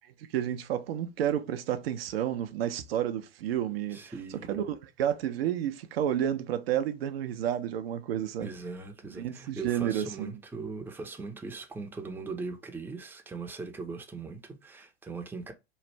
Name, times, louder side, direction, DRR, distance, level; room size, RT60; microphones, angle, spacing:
voice 1, 0.3-4.0 4.5-8.5 9.2-10.3, right 10 dB, 60° right, 0.6 m, -30 dB
voice 2, 3.9-4.7 8.4-15.5, right 4 dB, 5° right, 0.6 m, -40 dB
3.1 x 2.4 x 4.4 m
figure-of-eight pair, 90°, 34 cm